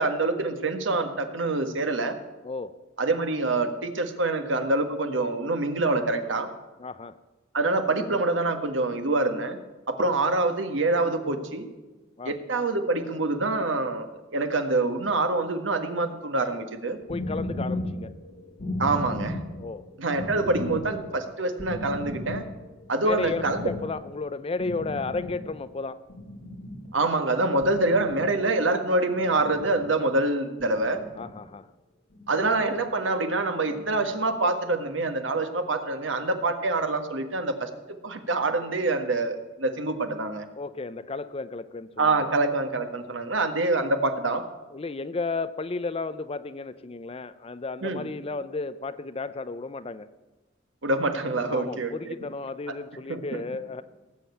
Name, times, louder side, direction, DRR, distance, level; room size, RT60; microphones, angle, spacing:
voice 1, 0.0-2.2 3.0-6.5 7.5-9.6 9.9-11.6 12.2-14.1 14.3-17.0 18.8-19.4 20.0-22.4 22.9-23.6 26.9-31.0 32.3-37.7 38.0-40.4 42.0-44.4 47.8-48.0 50.8-51.9 53.1-53.4, right 2 dB, 85° right, 7 dB, 1.6 m, -26 dB
voice 2, 2.4-2.7 6.8-7.2 12.2-12.4 17.1-18.1 19.6-19.8 23.0-26.0 31.2-31.7 40.6-42.3 43.4-43.5 44.7-50.1 51.4-53.8, left 3 dB, 30° left, 14 dB, 0.5 m, -33 dB
sound 1, 16.8-25.6 25.9-27.0 27.6-28.4 29.1-29.9 30.6-31.4 32.1-32.9 33.6-34.2, left 1 dB, 50° left, 3.0 m, -37 dB
18.5 x 7.5 x 8.4 m, 1.2 s
head